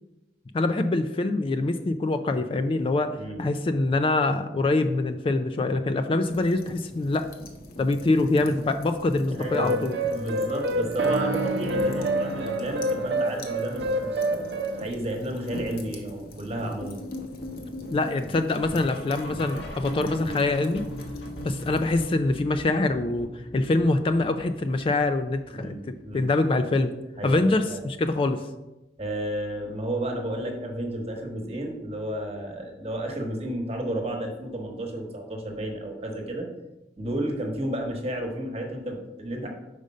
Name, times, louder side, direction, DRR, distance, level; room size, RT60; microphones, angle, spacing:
voice 1, 0.5-7.2 7.8-9.9 17.9-20.8 21.4-23.3 23.5-25.8 26.1-26.9 27.2-28.4, left 2 dB, 30° left, 9 dB, 0.3 m, -24 dB
voice 2, 3.2-3.5 9.3-14.4 14.8-17.0 25.5-26.3 27.2-27.8 29.0-36.5 37.0-39.5, right 1 dB, 35° right, 2 dB, 1.2 m, -32 dB
sound 1, 6.2-22.1, left 1 dB, 55° left, 1.0 m, -43 dB
sound 2, 9.4-14.9, right 1 dB, 70° right, 0.6 m, -27 dB
sound 3, 16.8-25.9 26.2-26.5 26.8-26.9 27.4-27.5 28.0-28.1, left 1 dB, 80° left, 1.3 m, -39 dB
5.2 x 5.0 x 5.3 m, 1.0 s
head